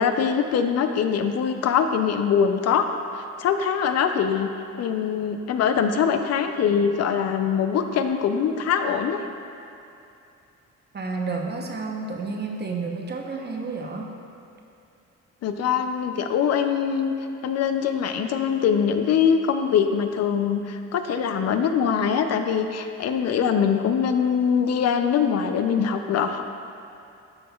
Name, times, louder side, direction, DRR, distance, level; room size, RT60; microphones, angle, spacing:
voice 1, 0.0-2.9 3.1-9.2 15.4-17.1 17.4-26.4, left 7 dB, 60° left, 7 dB, 0.4 m, -23 dB
voice 2, 10.9-14.1, right 4 dB, 35° right, 1 dB, 0.8 m, -30 dB
12.5 x 4.2 x 2.3 m, 2.7 s
cardioid pair, 90°, 30 cm